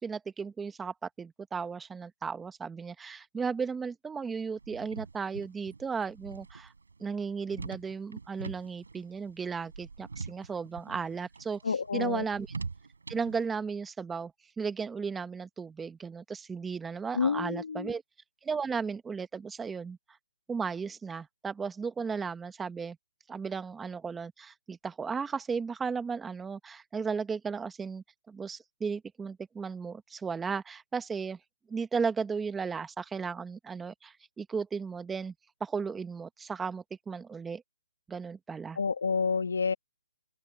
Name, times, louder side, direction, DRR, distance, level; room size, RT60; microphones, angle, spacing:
voice 1, 0.0-6.7 7.0-11.6 11.9-12.5 13.1-18.0 18.4-20.0 20.5-23.0 23.3-31.4 31.7-35.3 35.6-37.6 38.1-38.8, right 5 dB, 10° right, 1.3 m, -35 dB
sound 1, 4.6-13.4, right 4 dB, 90° right, 5.8 m, -44 dB
voice 2, 11.6-12.2 17.1-17.9 38.8-39.7, left 5 dB, 80° left, 2.1 m, -29 dB
open air
hypercardioid pair, 155°, 0 cm